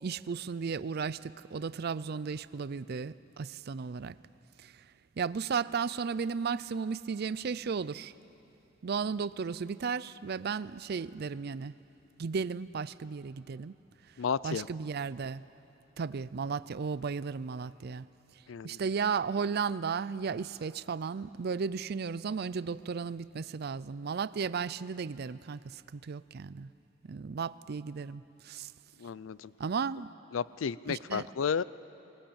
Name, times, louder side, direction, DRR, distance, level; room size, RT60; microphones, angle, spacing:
voice 1, 0.0-4.2 4.6-4.7 5.2-8.1 8.8-11.7 12.2-13.8 14.4-15.4 16.0-18.1 18.6-26.7 27.0-28.7 29.6-30.1 30.9-31.3, right 5 dB, 55° right, 17 dB, 0.4 m, -34 dB
voice 2, 14.2-14.7 18.5-18.8 29.0-29.5 30.3-31.6, left 6 dB, 85° left, 18 dB, 0.4 m, -32 dB
22.0 x 19.0 x 8.7 m, 2.9 s
head